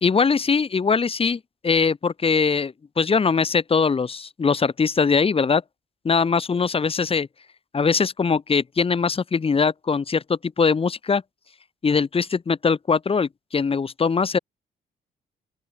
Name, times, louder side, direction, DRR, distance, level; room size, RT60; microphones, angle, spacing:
voice 1, 0.0-5.6 6.1-7.3 7.7-11.2 11.8-14.4, left 5 dB, 35° left, 2.4 m, -21 dB
open air
cardioid pair, 80°, 17 cm